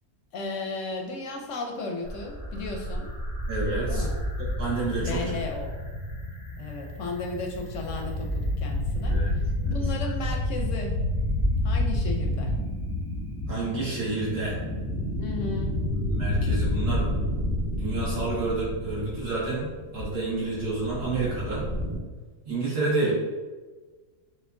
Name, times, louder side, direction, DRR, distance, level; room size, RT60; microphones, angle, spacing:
voice 1, 0.3-3.1 3.9-4.2 5.0-5.7 6.6-10.9 11.6-12.5 15.2-15.8 23.0-23.1, left 3 dB, 65° left, 1 dB, 0.8 m, -35 dB
sound 1, 2.0-22.0, left 1 dB, 35° right, 1.4 m, -29 dB
voice 2, 3.5-4.0 4.4-5.4 9.0-9.3 9.6-9.9 13.5-14.6 16.1-17.1 17.7-21.7 22.5-23.1, right 3 dB, 70° right, -7 dB, 2.1 m, -29 dB
6.4 x 2.8 x 2.6 m, 1.3 s
omnidirectional pair, 1.7 m